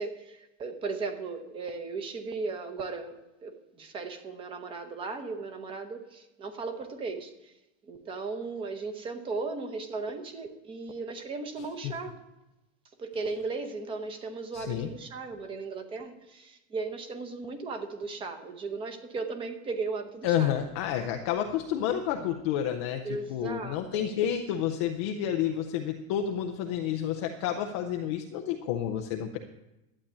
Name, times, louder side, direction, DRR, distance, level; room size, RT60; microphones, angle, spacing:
voice 1, 0.0-7.5 7.8-12.1 13.0-20.5 23.0-24.1, right 4 dB, 15° right, 8 dB, 0.8 m, -36 dB
voice 2, 14.5-14.9 20.2-29.4, left 10 dB, 20° left, 4 dB, 0.4 m, -30 dB
12.0 x 8.5 x 9.9 m, 0.94 s
supercardioid pair, 180°, 39 cm